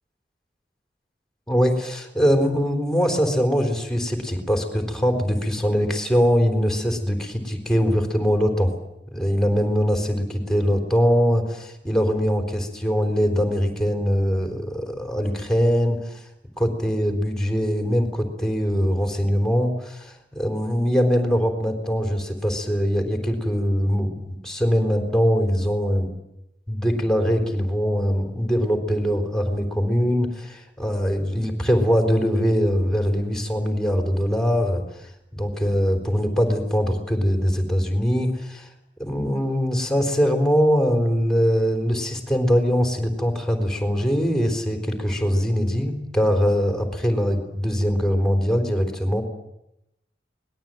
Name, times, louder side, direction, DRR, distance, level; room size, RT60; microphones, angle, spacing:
voice 1, 1.5-8.7 9.1-16.2 16.6-24.1 24.4-26.1 26.7-38.7 39.0-49.2, equal, 5° left, 4 dB, 3.8 m, -22 dB
24.5 x 20.0 x 9.1 m, 0.84 s
head